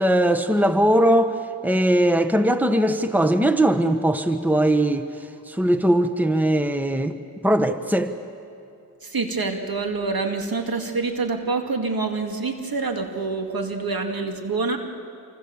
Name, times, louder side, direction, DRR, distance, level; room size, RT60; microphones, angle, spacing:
voice 1, 0.0-7.2 7.4-8.2, right 1 dB, 5° right, 8 dB, 1.4 m, -20 dB
voice 2, 9.0-14.8, right 3 dB, 60° right, 4 dB, 2.6 m, -26 dB
27.5 x 25.0 x 7.4 m, 2.5 s
cardioid pair, 45°, 39 cm